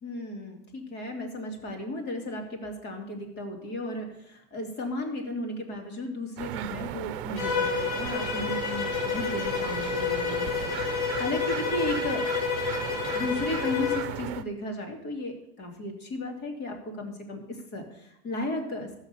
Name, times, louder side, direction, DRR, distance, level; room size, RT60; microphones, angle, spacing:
voice 1, 0.0-12.2 13.1-18.9, left 1 dB, 35° left, 3 dB, 2.8 m, -35 dB
sound 1, 6.4-14.4, right 13 dB, 60° right, 0.9 m, -36 dB
Bowed string instrument, 7.4-14.1, left 7 dB, 50° left, 2.3 m, -30 dB
14.5 x 6.5 x 6.8 m, 0.82 s
supercardioid pair, 140°, 30 cm